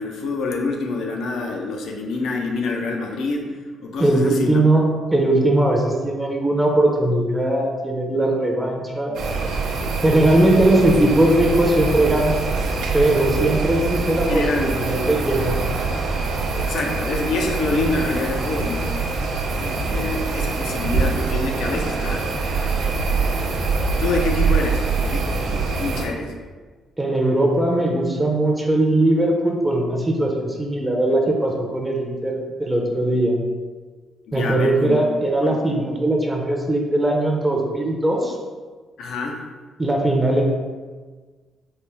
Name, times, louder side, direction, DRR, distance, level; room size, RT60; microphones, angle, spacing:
voice 1, 0.0-4.6 14.3-14.7 16.6-18.9 19.6-22.2 24.0-26.3 34.3-35.0 35.4-35.6 39.0-39.4, left 3 dB, 75° left, 2 dB, 0.5 m, -26 dB
voice 2, 4.0-9.2 10.0-12.4 12.9-15.6 27.0-33.4 34.3-38.4 39.8-40.4, right 1 dB, 15° right, 1 dB, 0.5 m, -19 dB
sound 1, 9.1-26.1, right 4 dB, 80° right, 0.6 m, -24 dB
4.4 x 2.1 x 3.4 m, 1.4 s
cardioid pair, 90°, 0 cm